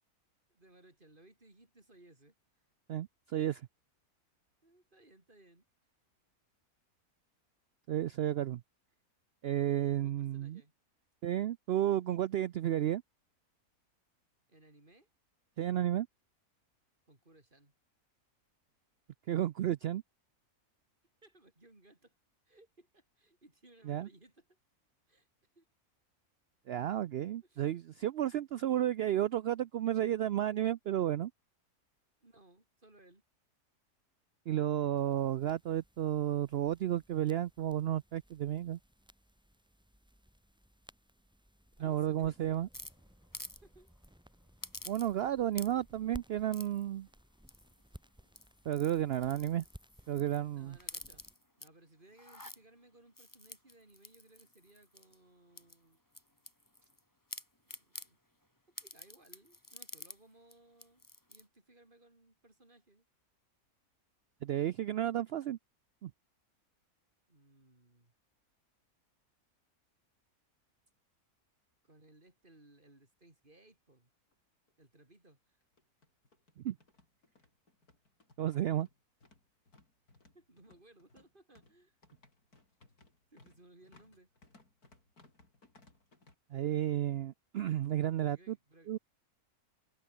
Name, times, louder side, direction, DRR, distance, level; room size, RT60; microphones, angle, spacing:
voice 1, 0.5-2.3 4.6-5.6 9.9-10.7 14.5-15.1 17.1-17.7 21.2-22.1 22.5-24.6 25.1-25.3 25.6-25.7 27.4-27.7 32.2-33.2 41.8-42.6 43.6-43.9 50.6-51.2 51.6-56.0 56.8-56.9 57.6-58.2 58.7-63.1 67.3-68.1 71.8-74.1 74.8-75.6 80.3-82.0 83.3-84.3 88.2-88.9, right 2 dB, 35° right, 4.2 m, -62 dB
voice 2, 2.9-3.6 7.9-8.6 9.4-10.6 11.2-13.0 15.6-16.1 19.3-20.0 23.9-24.1 26.7-31.3 34.5-38.8 41.8-42.7 44.9-47.1 48.7-49.6 50.1-50.8 64.4-65.6 66.0-66.1 76.6-76.8 78.4-78.9 86.5-88.6 88.9-89.0, right 12 dB, 75° right, 0.5 m, -32 dB
sound 1, 34.9-51.3, equal, 5° right, 1.4 m, -59 dB
sound 2, 42.7-43.6 43.9-44.1 44.6-45.3 45.5-46.0 46.5-46.8 47.5-47.9 48.3-50.4 50.8-51.7 52.1-52.6 53.2-55.2 55.6-57.0 57.3-58.1 58.8-60.2 60.5-60.6 60.8-61.4, left 1 dB, 10° left, 2.5 m, -49 dB
sound 3, 74.3-74.4 74.7-74.8 75.6-86.3, left 2 dB, 80° left, 5.7 m, -64 dB
omnidirectional pair, 1.6 m